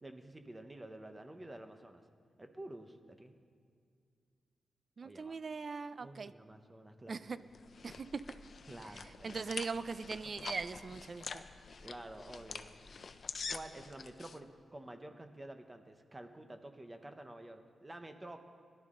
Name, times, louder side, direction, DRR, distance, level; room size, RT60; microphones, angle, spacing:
voice 1, 0.0-2.0 2.4-3.3 5.0-5.4 6.0-7.2 8.7-9.5 11.7-13.2 13.5-18.4, right 1 dB, 15° right, 6 dB, 0.9 m, -50 dB
voice 2, 5.0-6.3 7.1-7.4 7.8-8.2 9.2-11.4, right 4 dB, 40° right, 14 dB, 0.4 m, -40 dB
sound 1, 7.3-14.4, left 5 dB, 50° left, 0.6 m, -46 dB
21.5 x 11.5 x 3.8 m, 2.2 s
wide cardioid pair, 130°, 0 cm